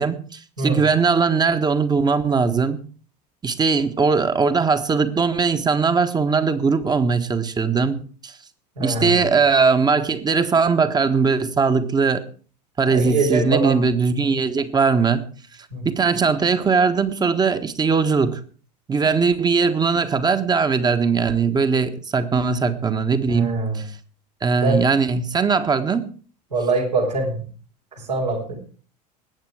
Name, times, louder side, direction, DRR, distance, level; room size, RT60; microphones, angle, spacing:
voice 1, 0.0-2.8 3.4-8.3 8.8-12.2 12.8-15.2 15.8-18.4 18.9-23.8 24.4-26.1, right 5 dB, 20° right, 10 dB, 1.4 m, -20 dB
voice 2, 8.8-9.2 12.9-13.8 14.2-14.4 15.7-15.9 23.3-23.8 24.6-24.8 26.5-27.4 28.0-28.5, right 3 dB, 80° right, -2 dB, 4.3 m, -23 dB
20.0 x 8.1 x 4.9 m, 0.41 s
figure-of-eight pair, 75°, 21 cm